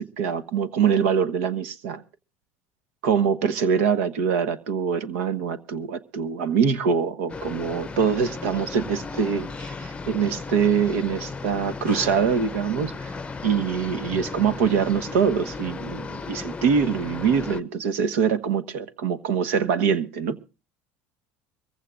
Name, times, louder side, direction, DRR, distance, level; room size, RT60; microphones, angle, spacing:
voice 1, 0.0-2.0 3.0-13.1 13.4-20.4, right 6 dB, 85° right, 15 dB, 1.2 m, -24 dB
sound 1, 7.3-17.6, left 4 dB, 15° left, 0.7 m, -35 dB
24.0 x 15.0 x 2.4 m, 0.30 s
supercardioid pair, 105°, 7 cm